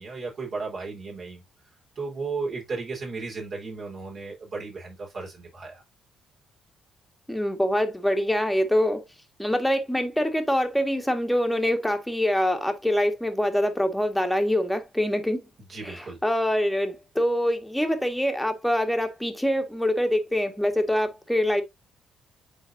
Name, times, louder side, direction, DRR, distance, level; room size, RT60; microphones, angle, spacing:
voice 1, 0.0-1.4 2.0-5.8 15.7-16.2, right 4 dB, 50° right, 4.3 m, -34 dB
voice 2, 7.3-9.0 9.4-15.5 15.8-21.6, equal, 5° left, 1.7 m, -25 dB
9.8 x 4.1 x 2.7 m
cardioid pair, 90°, 0 cm